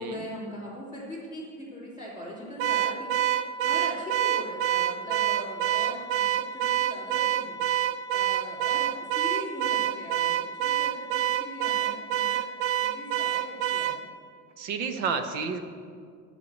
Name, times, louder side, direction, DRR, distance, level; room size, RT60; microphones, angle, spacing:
voice 1, 0.0-7.6 8.1-12.5 12.8-14.1, left 1 dB, 10° right, -7 dB, 2.7 m, -40 dB
Car / Alarm, 2.6-14.0, right 11 dB, 90° right, 0.7 m, -27 dB
voice 2, 14.6-15.6, right 5 dB, 70° right, 7 dB, 1.2 m, -30 dB
11.5 x 4.9 x 8.0 m, 2.1 s
cardioid pair, 180°, 39 cm